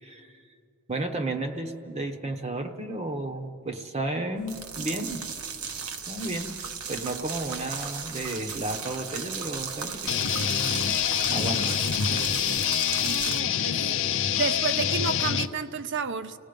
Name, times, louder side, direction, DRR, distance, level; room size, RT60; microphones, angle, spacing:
voice 1, 0.0-0.3 0.9-5.3 6.1-6.5 6.9-10.1 11.3-11.7 12.1-12.2, right 2 dB, 30° right, 6 dB, 1.0 m, -32 dB
sound 1, 4.4-13.4, right 6 dB, 80° right, 1.3 m, -36 dB
sound 2, 10.1-15.5, left 9 dB, 60° left, 0.6 m, -26 dB
voice 2, 12.0-12.5 13.0-13.8 14.3-16.4, right 5 dB, 55° right, 12 dB, 0.7 m, -32 dB
30.0 x 17.5 x 5.3 m, 2.5 s
head